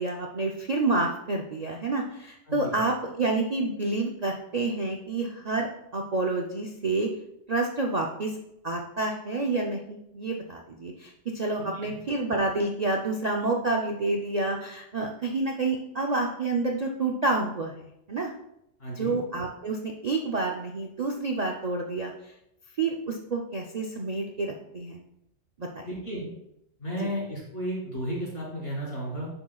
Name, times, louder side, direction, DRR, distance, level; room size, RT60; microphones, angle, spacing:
voice 1, 0.0-7.1 7.5-8.3 8.6-17.7 18.1-18.3 19.0-22.1 22.8-25.0 25.6-25.8 27.0-27.1, right 3 dB, 40° right, 0 dB, 0.6 m, -29 dB
voice 2, 2.5-2.8 11.6-12.0 18.8-19.1 25.8-26.3 26.8-29.3, equal, 50° left, -6 dB, 3.7 m, -33 dB
10.5 x 6.8 x 2.3 m, 0.81 s
omnidirectional pair, 1.3 m